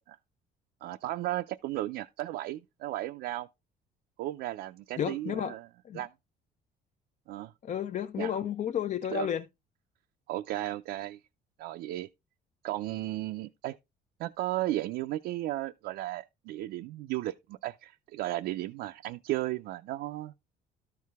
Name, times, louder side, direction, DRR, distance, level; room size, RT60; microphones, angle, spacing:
voice 1, 0.8-3.5 4.2-5.7 5.9-6.1 7.3-7.5 8.2-8.4 9.1-9.3 10.3-11.2 11.6-12.1 12.6-13.8 14.2-20.3, right 15 dB, 80° right, 0.5 m, -35 dB
voice 2, 5.0-5.5 5.8-6.0 7.6-9.4, left 9 dB, 45° left, 0.6 m, -32 dB
12.5 x 4.7 x 3.5 m
cardioid pair, 110°, 17 cm